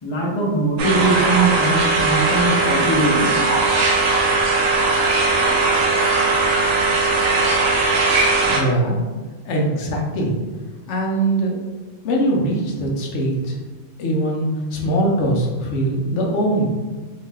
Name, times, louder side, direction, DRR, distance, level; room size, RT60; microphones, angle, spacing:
voice 1, 0.0-3.4, right 2 dB, 35° left, -3 dB, 0.5 m, -21 dB
sound 1, 0.8-8.6, right 3 dB, 60° right, 0.7 m, -18 dB
voice 2, 8.4-9.0 9.4-10.4 10.9-11.6 12.0-13.6 14.0-16.7, right 1 dB, 80° left, -1 dB, 0.9 m, -21 dB
2.8 x 2.2 x 3.2 m, 1.3 s
omnidirectional pair, 1.2 m